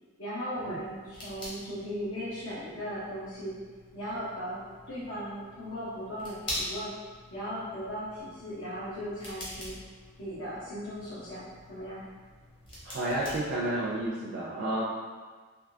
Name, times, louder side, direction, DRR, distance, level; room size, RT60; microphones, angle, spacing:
voice 1, 0.2-3.5 3.9-6.9 7.3-9.7 10.2-12.0, equal, 70° left, -13 dB, 0.9 m, -37 dB
sound 1, 0.6-14.1, equal, 25° left, 0.8 m, -45 dB
voice 2, 12.8-14.8, right 1 dB, 55° right, -5 dB, 0.4 m, -31 dB
3.5 x 2.6 x 2.6 m, 1.5 s
head